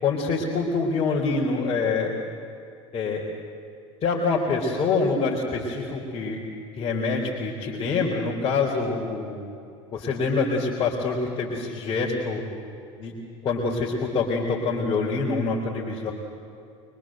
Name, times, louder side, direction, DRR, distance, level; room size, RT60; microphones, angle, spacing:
voice 1, 0.0-2.1 2.9-3.2 4.0-6.4 6.8-9.4 9.9-12.4 13.0-13.1 13.4-16.1, left 4 dB, 40° left, -3 dB, 4.6 m, -25 dB
25.0 x 24.0 x 8.0 m, 2.5 s
hypercardioid pair, 85°, 15 cm